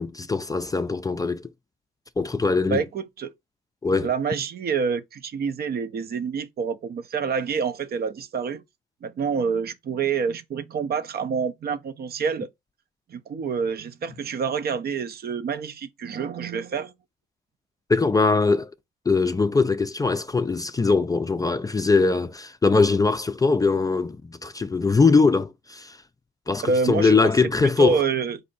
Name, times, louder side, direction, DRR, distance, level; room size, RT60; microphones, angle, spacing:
voice 1, 0.0-1.4 2.2-2.8 3.8-4.1 17.9-18.7 19.1-26.0 26.5-28.0, left 4 dB, 20° left, 0.3 m, -21 dB
voice 2, 2.7-3.3 4.0-8.6 9.0-12.5 13.1-16.9 26.6-27.3 27.6-28.4, right 5 dB, 50° right, 0.6 m, -27 dB
4.2 x 2.7 x 3.9 m
cardioid pair, 90°, 20 cm